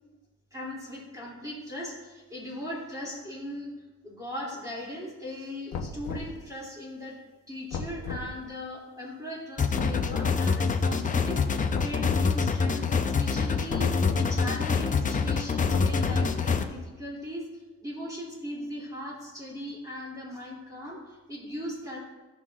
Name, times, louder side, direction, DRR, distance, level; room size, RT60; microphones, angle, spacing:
voice 1, 0.5-3.7 4.0-7.2 7.5-22.0, left 1 dB, 10° right, -6 dB, 2.7 m, -38 dB
sound 1, 5.7-6.4 7.7-8.3 9.7-10.3 11.7-12.3 13.7-14.3 15.7-16.4, left 5 dB, 65° left, 0.9 m, -35 dB
sound 2, 9.6-16.6, left 5 dB, 25° left, 0.6 m, -26 dB
15.0 x 5.7 x 2.5 m, 1.2 s
cardioid pair, 90°, 30 cm